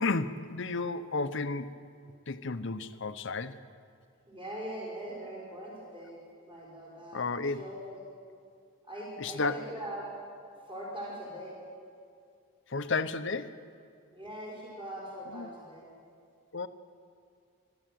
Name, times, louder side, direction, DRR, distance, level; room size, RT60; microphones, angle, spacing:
voice 1, 0.0-1.7 2.3-3.6 7.1-7.6 9.2-9.7 12.7-13.6 15.3-15.5 16.5-16.7, left 3 dB, 55° left, 12 dB, 0.8 m, -32 dB
voice 2, 4.3-6.2 6.5-8.0 8.9-10.1 10.7-11.6 14.1-15.9, right 1 dB, 25° right, -4 dB, 5.2 m, -41 dB
24.0 x 13.0 x 9.2 m, 2.3 s
head